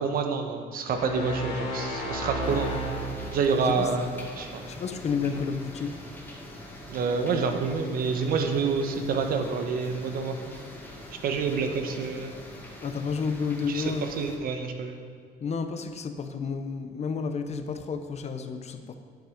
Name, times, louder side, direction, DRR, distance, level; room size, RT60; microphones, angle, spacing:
voice 1, 0.0-2.7 3.3-4.1 4.4-4.7 6.9-10.4 11.2-12.3 13.7-15.0, right 5 dB, 60° right, 6 dB, 1.1 m, -28 dB
sound 1, 0.9-3.6, equal, 85° left, 2.4 m, -33 dB
sound 2, 2.4-14.4, left 1 dB, 10° left, 1.9 m, -43 dB
voice 2, 4.7-6.0 12.8-14.1 15.4-18.9, left 5 dB, 40° left, 8 dB, 0.8 m, -31 dB
8.8 x 7.8 x 5.1 m, 2.2 s
cardioid pair, 110°, 17 cm